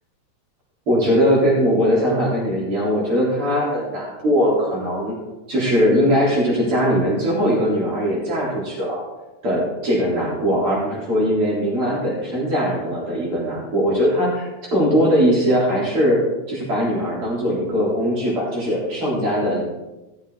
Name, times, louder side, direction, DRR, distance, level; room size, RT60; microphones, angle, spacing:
voice 1, 0.9-5.2 5.5-9.0 9.4-16.2 16.5-19.6, equal, 45° right, -6 dB, 4.7 m, -20 dB
16.5 x 7.4 x 3.9 m, 1.0 s
omnidirectional pair, 3.5 m